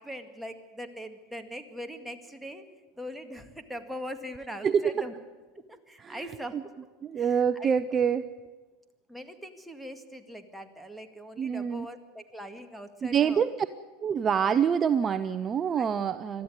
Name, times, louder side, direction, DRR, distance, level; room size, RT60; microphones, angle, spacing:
voice 1, 0.0-2.6 3.0-5.1 5.7-6.6 7.2-7.7 9.1-13.5 15.7-16.0, equal, 5° right, 5 dB, 2.0 m, -41 dB
voice 2, 7.0-8.2 11.4-11.9 13.0-13.7 14.0-16.4, right 7 dB, 30° right, 12 dB, 0.7 m, -26 dB
22.0 x 13.5 x 9.7 m, 1.3 s
hypercardioid pair, 105°, 0 cm